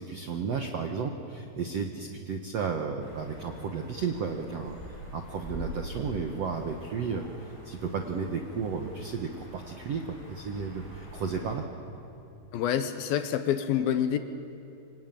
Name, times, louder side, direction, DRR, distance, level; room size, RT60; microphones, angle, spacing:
voice 1, 0.0-4.8 5.1-11.6, right 5 dB, 70° right, 4 dB, 1.5 m, -33 dB
sound 1, 3.0-11.6, left 1 dB, 5° left, 6.8 m, -45 dB
voice 2, 12.5-14.2, left 9 dB, 70° left, 9 dB, 2.5 m, -27 dB
25.5 x 24.5 x 9.2 m, 2.7 s
omnidirectional pair, 4.8 m